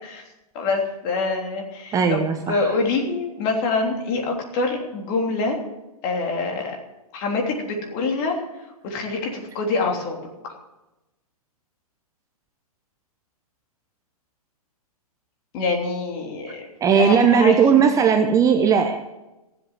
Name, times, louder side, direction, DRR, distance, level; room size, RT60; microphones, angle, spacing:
voice 1, 0.5-5.6 6.0-6.7 7.1-8.4 8.8-10.2 10.4-10.5 15.5-16.6 16.9-17.9, left 3 dB, 40° left, 1 dB, 3.3 m, -25 dB
voice 2, 1.9-2.8 16.8-19.0, right 7 dB, 15° right, 6 dB, 0.8 m, -17 dB
15.0 x 7.9 x 7.5 m, 1.0 s
hypercardioid pair, 125°, 19 cm